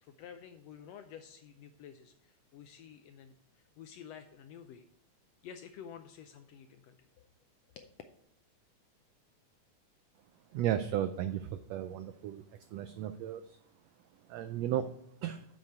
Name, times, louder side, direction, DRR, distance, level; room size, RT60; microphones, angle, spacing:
voice 1, 0.0-3.3 3.8-4.9 5.4-7.3 7.8-7.9, left 8 dB, 80° left, 7 dB, 1.5 m, -50 dB
voice 2, 10.5-12.4 12.7-13.6 14.3-14.9 15.2-15.4, right 11 dB, 90° right, 11 dB, 1.4 m, -34 dB
7.6 x 6.6 x 4.5 m, 0.73 s
omnidirectional pair, 3.5 m